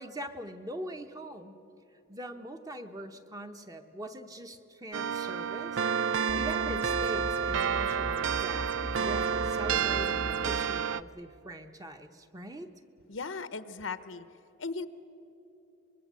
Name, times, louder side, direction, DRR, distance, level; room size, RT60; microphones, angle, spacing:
voice 1, 0.0-1.5 2.1-5.9 6.4-8.7 9.0-12.7, right 1 dB, 20° right, 6 dB, 0.9 m, -42 dB
sound 1, 4.9-11.0, right 7 dB, 80° right, 0.5 m, -30 dB
sound 2, 6.3-10.7, left 1 dB, 25° left, 0.6 m, -40 dB
voice 2, 13.1-14.2 14.6-14.9, left 4 dB, 80° left, 13 dB, 0.9 m, -37 dB
25.0 x 21.5 x 7.4 m, 2.9 s
head